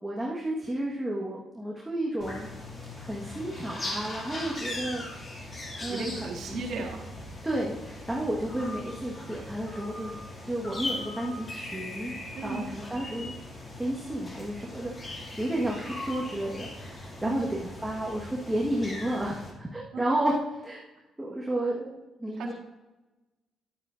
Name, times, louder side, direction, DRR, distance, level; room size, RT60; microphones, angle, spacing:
voice 1, 0.0-2.5 3.0-5.0 5.8-6.1 6.5-6.9 7.4-10.2 10.4-12.2 12.4-13.3 13.8-20.4 20.6-20.8 21.2-22.5, right 1 dB, 10° right, -4 dB, 1.5 m, -32 dB
sound 1, 2.2-19.5, left 2 dB, 35° left, 2.3 m, -39 dB
voice 2, 5.9-7.0 12.3-12.7 17.2-17.6 19.9-20.2 22.4-22.5, right 4 dB, 70° right, 0 dB, 1.6 m, -36 dB
10.5 x 8.8 x 2.6 m, 1.1 s
cardioid pair, 90°, 0 cm